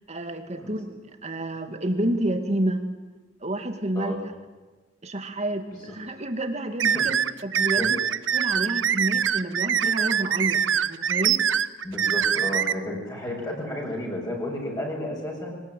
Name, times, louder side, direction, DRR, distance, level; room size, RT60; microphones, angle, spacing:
voice 1, 0.1-2.8 3.4-4.3 5.0-7.1 7.4-8.0 8.3-11.4, right 1 dB, 35° right, 7 dB, 2.2 m, -29 dB
sound 1, 6.8-12.7, right 8 dB, 75° right, 0.8 m, -23 dB
voice 2, 11.8-15.5, left 1 dB, 20° left, -2 dB, 5.9 m, -32 dB
22.5 x 19.5 x 9.2 m, 1.2 s
head